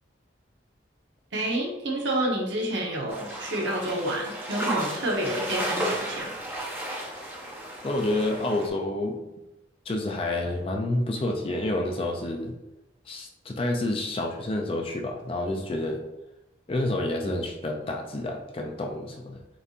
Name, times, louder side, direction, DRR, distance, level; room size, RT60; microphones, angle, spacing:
voice 1, 1.3-6.4, right 1 dB, 75° right, -1 dB, 1.1 m, -29 dB
sound 1, 3.1-8.7, right 1 dB, 10° right, 0.8 m, -33 dB
voice 2, 7.8-9.2 9.9-12.5 13.1-16.0 16.7-19.4, left 1 dB, 30° left, 2 dB, 0.4 m, -29 dB
6.8 x 2.8 x 2.4 m, 0.97 s
head